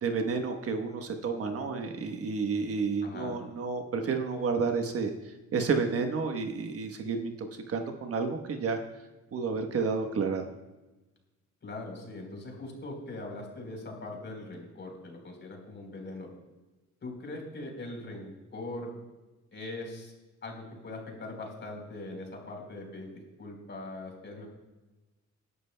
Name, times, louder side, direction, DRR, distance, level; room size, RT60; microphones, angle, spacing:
voice 1, 0.0-8.8 9.3-10.5, right 4 dB, 50° right, 5 dB, 1.2 m, -31 dB
voice 2, 3.0-3.4 11.6-16.3 17.0-18.9 19.5-20.1 20.4-23.1 23.4-24.5, left 2 dB, 35° left, 1 dB, 4.0 m, -41 dB
21.5 x 11.0 x 2.2 m, 1.1 s
cardioid pair, 115°, 31 cm